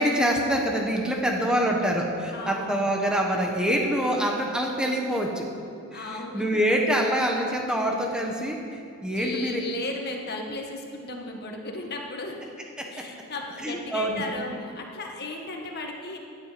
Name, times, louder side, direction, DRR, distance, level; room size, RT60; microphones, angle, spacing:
voice 1, 0.0-5.4 5.9-9.6 12.8-12.9 13.6-14.2, equal, 5° right, 0 dB, 1.4 m, -25 dB
voice 2, 2.3-2.8 5.9-6.6 9.1-12.4 12.9-16.2, left 2 dB, 45° left, 1 dB, 1.6 m, -35 dB
17.0 x 11.0 x 5.2 m, 2.6 s
head